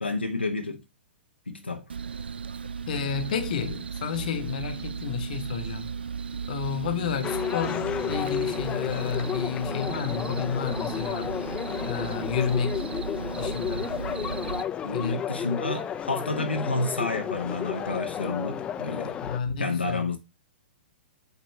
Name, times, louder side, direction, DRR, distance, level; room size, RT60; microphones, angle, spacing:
voice 1, 0.0-0.8 1.5-1.9 14.8-19.2 19.6-20.2, left 3 dB, 85° left, 0.8 m, -30 dB
sound 1, 1.9-14.6, right 6 dB, 75° right, 0.3 m, -35 dB
voice 2, 2.9-5.9 6.5-11.3 11.9-12.8 13.4-13.9 14.9-15.3 19.2-20.0, left 7 dB, 55° left, 1.1 m, -31 dB
baseball sounds, 7.2-19.4, left 9 dB, 20° left, 0.5 m, -32 dB
8.2 x 2.9 x 4.3 m
figure-of-eight pair, 115°, 6 cm